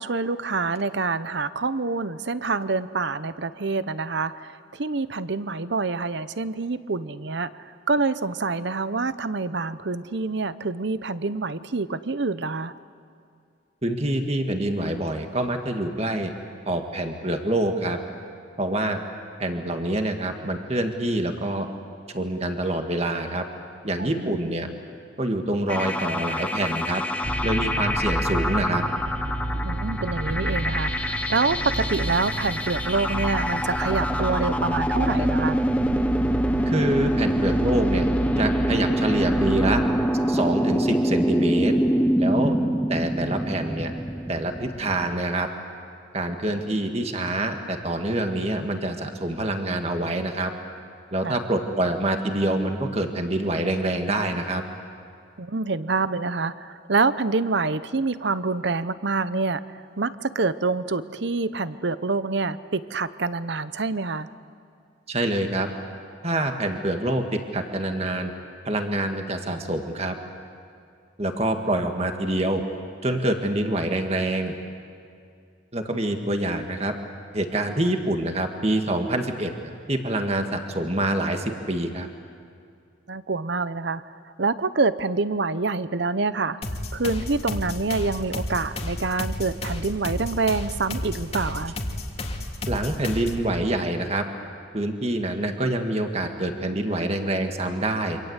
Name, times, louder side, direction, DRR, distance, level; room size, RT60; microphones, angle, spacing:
voice 1, 0.0-7.5 7.9-12.7 24.0-24.4 29.6-35.6 42.4-42.8 51.2-51.4 55.4-59.6 60.0-64.3 83.1-84.0 84.4-86.6 86.9-91.8, right 3 dB, 60° right, 14 dB, 0.8 m, -26 dB
voice 2, 13.8-16.3 16.7-18.0 18.6-19.0 19.4-21.7 22.1-23.4 23.8-24.7 25.2-27.0 27.4-28.8 36.7-38.1 38.4-39.8 40.3-41.7 42.2-42.6 42.9-43.9 44.3-45.5 46.1-50.5 51.1-54.6 65.1-65.7 66.2-68.3 68.7-70.2 71.2-72.6 73.0-74.5 75.7-76.9 77.3-79.5 79.9-82.1 92.7-94.2 94.7-98.2, right 1 dB, 30° right, 5 dB, 1.9 m, -26 dB
sound 1, 25.7-45.1, equal, 5° left, 0.9 m, -25 dB
sound 2, 27.2-40.1, right 1 dB, 75° right, 1.3 m, -31 dB
sound 3, 86.6-93.5, left 1 dB, 30° left, 2.2 m, -32 dB
28.0 x 26.0 x 8.2 m, 2.4 s
head